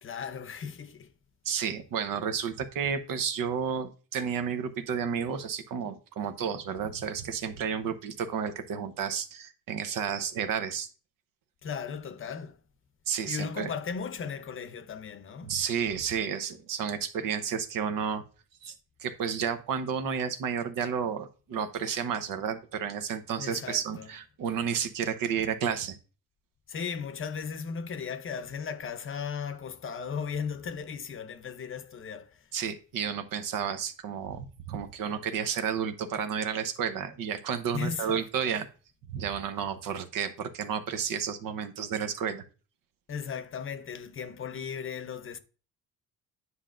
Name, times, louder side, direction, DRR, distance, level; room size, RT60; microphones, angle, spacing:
voice 1, 0.0-1.1 11.6-12.6 13.3-15.5 23.4-24.1 26.7-32.4 37.7-38.5 43.1-45.4, left 6 dB, 40° left, 0.7 m, -36 dB
voice 2, 1.4-10.9 13.1-13.7 15.4-18.2 18.6-18.7 19.0-26.0 32.5-38.7 39.1-42.4, right 7 dB, 75° right, 0.9 m, -31 dB
9.6 x 5.6 x 2.5 m
cardioid pair, 135°, 34 cm